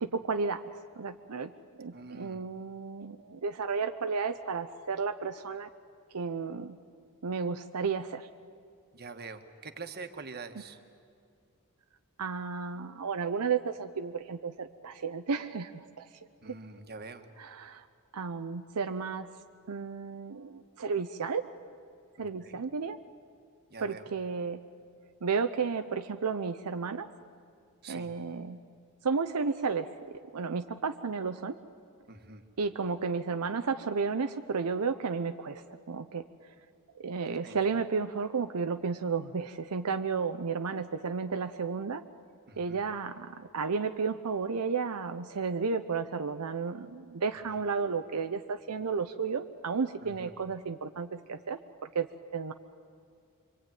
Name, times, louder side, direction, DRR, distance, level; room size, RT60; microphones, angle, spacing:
voice 1, 0.0-1.5 1.8-5.7 6.1-6.8 7.2-8.3 12.2-16.1 16.5-16.6 17.4-17.8 18.1-19.3 19.7-21.4 22.2-23.0 23.8-24.6 25.2-27.1 27.9-28.6 29.0-29.9 30.3-31.6 32.6-36.2 37.0-42.0 42.6-51.6 51.9-52.1 52.3-52.5, right 5 dB, 85° right, 8 dB, 0.7 m, -32 dB
voice 2, 1.9-2.4 8.9-10.8 16.4-17.3 22.2-22.6 23.7-24.1 27.8-28.1 32.1-32.4 37.4-37.6 42.5-42.8 47.4-47.6 50.0-50.3, right 4 dB, 45° right, 7 dB, 1.4 m, -45 dB
25.5 x 23.5 x 9.2 m, 2.3 s
head